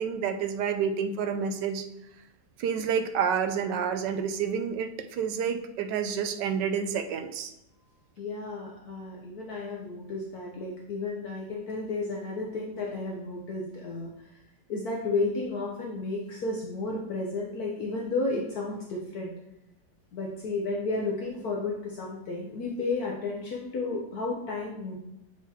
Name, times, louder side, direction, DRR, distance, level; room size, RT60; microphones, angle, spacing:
voice 1, 0.0-1.8 2.6-7.5, right 7 dB, 75° right, 7 dB, 1.2 m, -29 dB
voice 2, 8.2-14.4 14.7-19.3 20.1-25.0, left 3 dB, 60° left, -2 dB, 1.2 m, -32 dB
7.4 x 4.7 x 2.9 m, 0.87 s
omnidirectional pair, 1.9 m